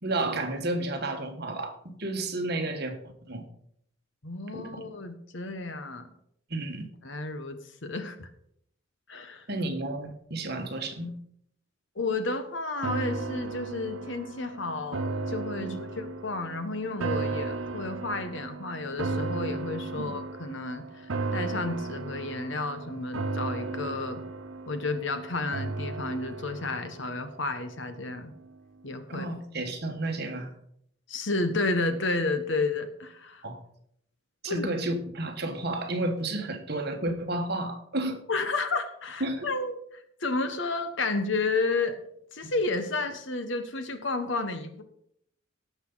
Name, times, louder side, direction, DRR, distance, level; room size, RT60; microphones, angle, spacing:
voice 1, 0.0-3.5 4.5-4.8 6.5-6.9 9.5-11.1 15.6-15.8 19.9-20.1 29.1-30.5 33.4-33.6 34.4-38.2 39.2-39.5, right 2 dB, 50° right, 5 dB, 1.5 m, -32 dB
voice 2, 4.2-6.1 7.0-8.3 9.1-9.5 11.9-24.2 24.7-28.3 28.8-29.3 31.1-33.4 34.5-34.7 38.3-39.7 40.2-42.0 42.3-44.8, left 3 dB, 65° left, 9 dB, 1.3 m, -31 dB
sound 1, 12.8-28.1 28.5-28.6, right 3 dB, 80° right, 0.8 m, -35 dB
18.0 x 7.0 x 4.0 m, 0.72 s
head